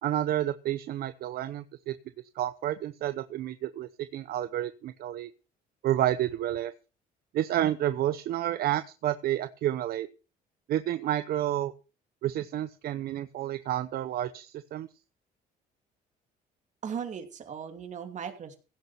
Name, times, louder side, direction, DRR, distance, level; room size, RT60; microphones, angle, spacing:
voice 1, 0.0-1.9 2.3-5.3 5.8-6.7 7.3-10.1 10.7-11.7 12.2-14.9, right 12 dB, 65° right, 12 dB, 0.8 m, -30 dB
voice 2, 16.8-18.6, right 7 dB, 45° right, 6 dB, 2.8 m, -37 dB
16.5 x 6.7 x 5.9 m, 0.34 s
cardioid pair, 110°, 17 cm